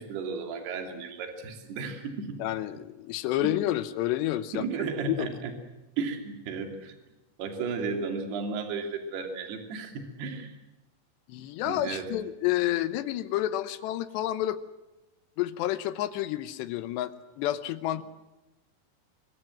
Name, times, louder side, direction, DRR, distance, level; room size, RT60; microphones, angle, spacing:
voice 1, 0.0-2.4 3.4-3.5 4.5-5.5 6.0-7.0 7.4-10.5 11.7-12.1, right 5 dB, 55° right, 5 dB, 4.5 m, -34 dB
voice 2, 2.4-4.6 5.1-5.3 11.3-14.6 15.4-18.0, left 14 dB, 75° left, 13 dB, 2.7 m, -29 dB
24.5 x 22.0 x 7.7 m, 0.99 s
omnidirectional pair, 5.8 m